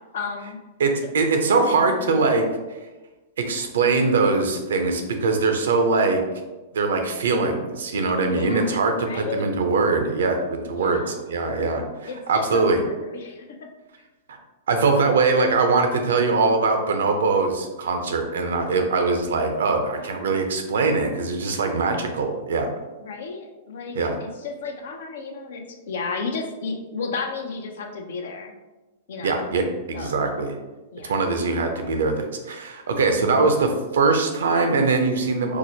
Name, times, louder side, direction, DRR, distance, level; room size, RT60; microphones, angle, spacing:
voice 1, 0.1-0.6 8.3-9.4 10.7-11.2 12.1-13.7 20.0-20.2 23.0-28.5 29.1-29.5 29.9-30.2 30.9-31.3 33.1-33.5, left 4 dB, 70° left, 4 dB, 0.5 m, -33 dB
voice 2, 0.8-2.5 3.4-6.2 6.7-12.8 14.3-14.4 14.7-22.7 23.9-24.2 29.2-30.5 31.1-35.6, right 3 dB, 75° right, 5 dB, 0.5 m, -22 dB
4.6 x 2.0 x 2.8 m, 1.1 s
hypercardioid pair, 110°, 0 cm